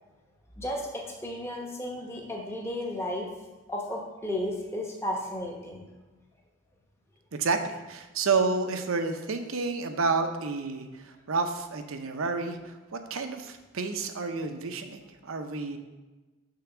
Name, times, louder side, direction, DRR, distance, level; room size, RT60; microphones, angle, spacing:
voice 1, 0.6-3.3 3.7-5.9, left 1 dB, 10° left, -1 dB, 0.8 m, -33 dB
voice 2, 7.3-15.8, right 4 dB, 75° right, 7 dB, 0.6 m, -30 dB
6.7 x 3.5 x 5.9 m, 1.2 s
head